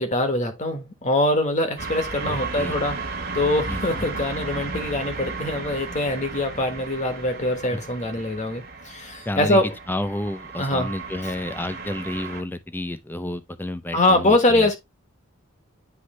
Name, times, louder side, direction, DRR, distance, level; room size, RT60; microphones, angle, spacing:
voice 1, 0.0-3.0 3.3-9.8 10.6-10.9 13.9-14.8, left 1 dB, 35° left, 1.4 m, -23 dB
sound 1, 1.8-12.4, right 4 dB, 50° right, 1.3 m, -34 dB
voice 2, 2.2-2.8 3.7-4.1 9.3-14.7, left 1 dB, 10° left, 0.6 m, -30 dB
9.6 x 3.2 x 3.1 m
head